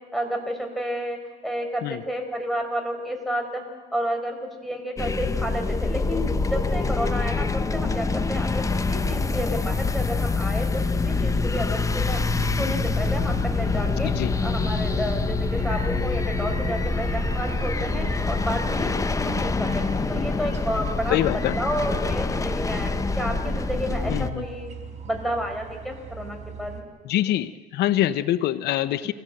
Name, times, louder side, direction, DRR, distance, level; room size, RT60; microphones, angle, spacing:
voice 1, 0.1-1.2 1.4-3.6 3.9-12.2 12.6-14.1 14.4-18.9 19.2-19.8 20.1-21.2 21.5-22.9 23.2-24.7 25.0-26.8 29.0-29.1, equal, ahead, 2 dB, 5.0 m, -30 dB
sound 1, 5.0-24.3, left 4 dB, 20° left, 0.8 m, -25 dB
sound 2, 12.3-26.8, right 6 dB, 45° right, 3.8 m, -37 dB
voice 2, 14.0-14.3 21.1-21.6 24.1-24.4 27.0-29.1, left 13 dB, 75° left, 14 dB, 0.7 m, -24 dB
25.5 x 17.0 x 7.9 m, 1.3 s
cardioid pair, 110°, 17 cm